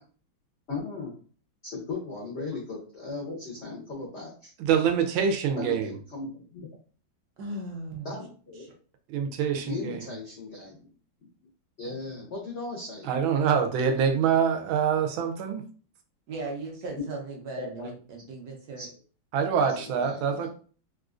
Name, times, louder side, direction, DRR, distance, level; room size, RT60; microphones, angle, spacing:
voice 1, 0.7-1.1 1.6-4.5 5.6-6.7 8.0-8.7 9.6-10.8 11.8-13.1 17.6-17.9 18.8-18.9 19.8-20.5, left 3 dB, 70° left, -3 dB, 0.6 m, -37 dB
voice 2, 4.6-5.9 9.1-10.0 13.1-15.6 19.3-20.5, right 7 dB, 90° right, 6 dB, 1.4 m, -25 dB
voice 3, 7.4-8.2 8.6-8.7 16.3-18.9, right 2 dB, 65° right, 1 dB, 1.1 m, -37 dB
3.7 x 2.4 x 2.4 m, 0.41 s
omnidirectional pair, 2.1 m